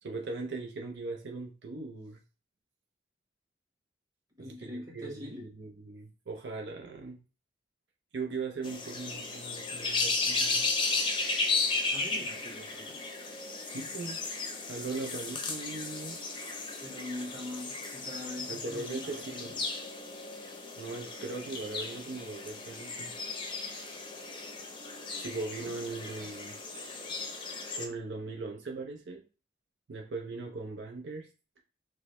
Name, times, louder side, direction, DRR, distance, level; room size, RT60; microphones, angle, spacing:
voice 1, 0.0-2.2 4.4-7.2 8.1-10.7 13.7-14.2 14.7-16.2 18.5-19.6 20.8-23.1 25.2-26.6 27.2-29.2 29.9-31.3, right 3 dB, 80° right, 2 dB, 0.6 m, -39 dB
voice 2, 4.4-5.5 11.9-13.0 16.8-19.6, left 1 dB, 20° right, -3 dB, 1.4 m, -43 dB
sound 1, 8.6-27.9, left 3 dB, 30° left, 0.5 m, -35 dB
4.7 x 2.1 x 3.0 m, 0.33 s
head